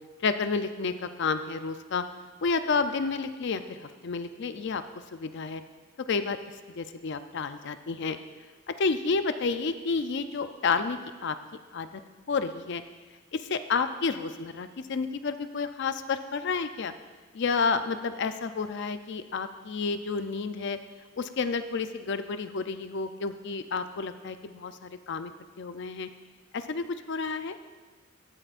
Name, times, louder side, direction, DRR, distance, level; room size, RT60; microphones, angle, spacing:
voice 1, 0.2-2.0 2.4-4.8 5.1-5.6 6.0-6.4 6.7-8.2 8.7-11.4 11.7-12.0 12.3-12.8 13.3-16.9 17.3-20.8 21.2-25.3 25.6-26.1 26.5-27.5, left 4 dB, 55° left, 10 dB, 0.5 m, -30 dB
15.0 x 8.8 x 2.5 m, 1.3 s
head